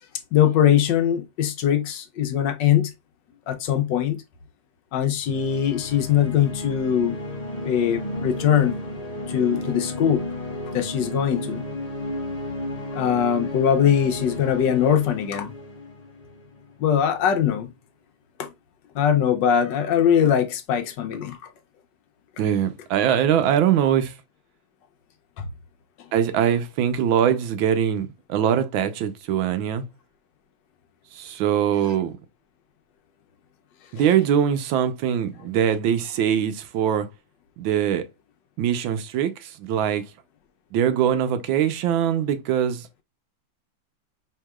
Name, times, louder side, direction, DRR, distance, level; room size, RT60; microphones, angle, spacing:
voice 1, 0.3-2.9 3.5-4.2 4.9-7.2 7.6-8.7 9.3-10.2 10.7-11.6 12.9-15.5 16.8-17.7 18.4-18.5 18.9-21.4 25.4-25.5, left 9 dB, 70° left, 1.2 m, -21 dB
sound 1, 5.2-16.7, left 1 dB, 35° left, 0.6 m, -33 dB
voice 2, 22.4-24.1 26.1-29.8 31.1-32.2 33.9-37.1 37.6-38.0 38.6-40.0 40.7-42.9, right 9 dB, 85° right, 1.4 m, -22 dB
4.7 x 3.5 x 2.2 m
omnidirectional pair, 2.2 m